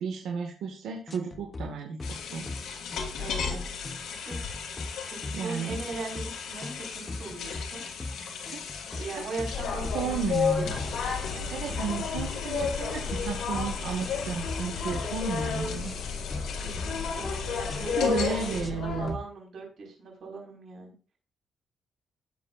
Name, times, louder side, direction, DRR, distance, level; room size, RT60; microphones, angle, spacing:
voice 1, 0.0-2.6 5.3-5.8 9.9-10.7 11.5-16.0 18.0-19.2, right 6 dB, 90° right, 1 dB, 1.9 m, -33 dB
sound 1, 1.1-1.7 2.0-2.2 2.5-2.7 2.9-3.5 3.8-4.0 4.3-5.0 5.2-5.4 5.7-6.3 6.6-6.8 7.1-7.6 8.0-8.2 8.5-9.1 9.4-9.6 9.8-10.4 10.8-11.0 11.2-11.9 12.1-13.2 13.5-13.7 14.0-14.6 14.9-15.1 15.4-16.5 16.8-17.4 17.7-17.9 18.1-18.8 19.1-19.2, left 2 dB, 20° left, 0.9 m, -38 dB
sound 2, 2.0-18.6, left 6 dB, 90° left, 2.6 m, -37 dB
voice 2, 3.2-3.7 4.0-4.4 5.0-7.8 8.9-10.2 10.6-11.1 11.3-11.6 16.6-20.9, right 3 dB, 55° right, 0 dB, 5.2 m, -40 dB
sound 3, 9.5-19.1, left 6 dB, 70° left, 4.9 m, -32 dB
18.0 x 7.7 x 2.6 m, 0.36 s
cardioid pair, 140°, 0 cm